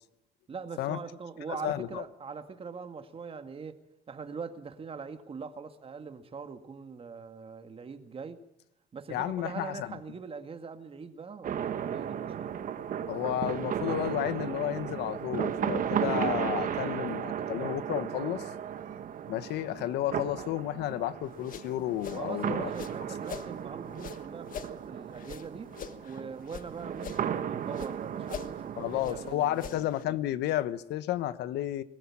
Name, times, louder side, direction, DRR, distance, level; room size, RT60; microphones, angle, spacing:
voice 1, 0.5-3.8 4.1-8.4 8.9-12.6 22.2-25.7 26.0-29.9, right 5 dB, 35° right, 8 dB, 2.0 m, -42 dB
voice 2, 1.6-2.0 9.1-9.9 13.1-18.4 19.3-22.7 28.8-31.8, left 13 dB, 80° left, 15 dB, 1.2 m, -32 dB
sound 1, 11.4-29.4, right 9 dB, 55° right, 1.5 m, -35 dB
sound 2, 21.2-23.5 23.9-26.7 27.0-28.0 28.2-30.0, left 9 dB, 55° left, 1.5 m, -44 dB
22.0 x 14.5 x 8.7 m, 0.87 s
cardioid pair, 110°, 17 cm